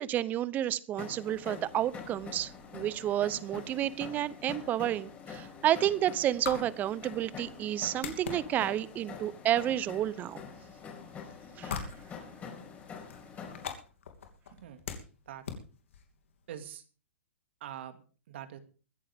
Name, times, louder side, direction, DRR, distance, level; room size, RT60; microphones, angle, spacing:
voice 1, 0.0-10.4 11.6-11.8, right 12 dB, 25° right, 19 dB, 0.8 m, -30 dB
sound 1, 1.0-13.7, left 6 dB, 20° left, 5.3 m, -46 dB
sound 2, 6.0-16.5, left 7 dB, 75° left, 2.9 m, -45 dB
voice 2, 14.5-14.8 15.3-15.4 16.5-16.8 17.6-18.6, right 10 dB, 60° right, 9 dB, 2.3 m, -44 dB
23.0 x 10.0 x 3.6 m, 0.37 s
hypercardioid pair, 135°, 7 cm